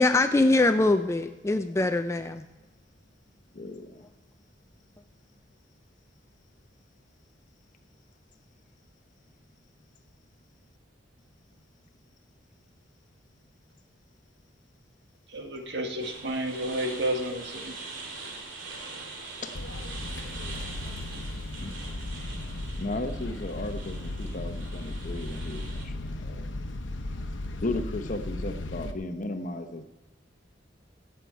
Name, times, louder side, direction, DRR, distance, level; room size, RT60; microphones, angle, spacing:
voice 1, 0.0-2.4, left 2 dB, 15° left, 9 dB, 0.3 m, -23 dB
voice 2, 3.5-4.1 19.4-19.6 21.1-21.3 21.6-21.7 22.8-26.7 27.6-29.8, left 2 dB, 40° left, 8 dB, 0.9 m, -35 dB
voice 3, 15.3-17.7, right 1 dB, 60° right, 3 dB, 1.8 m, -31 dB
sound 1, 16.0-25.8, right 3 dB, 75° right, 2.5 m, -43 dB
sound 2, 19.5-28.9, left 2 dB, 70° left, 0.9 m, -36 dB
17.5 x 7.7 x 4.6 m, 1.1 s
head